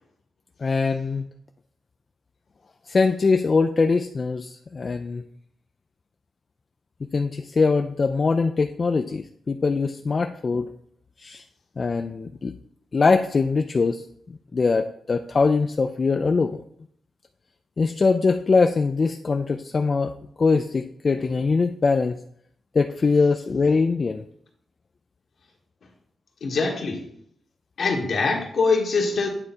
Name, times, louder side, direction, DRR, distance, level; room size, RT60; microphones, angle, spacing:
voice 1, 0.6-1.3 2.9-5.2 7.1-10.7 11.2-11.4 11.8-12.6 12.9-14.0 14.5-16.6 17.8-20.1 20.4-22.2 22.7-24.2, left 4 dB, 45° left, 7 dB, 0.4 m, -22 dB
voice 2, 26.4-27.0 27.8-29.3, left 4 dB, 70° left, 1 dB, 1.5 m, -23 dB
8.7 x 3.5 x 4.3 m, 0.68 s
cardioid pair, 75°, 0 cm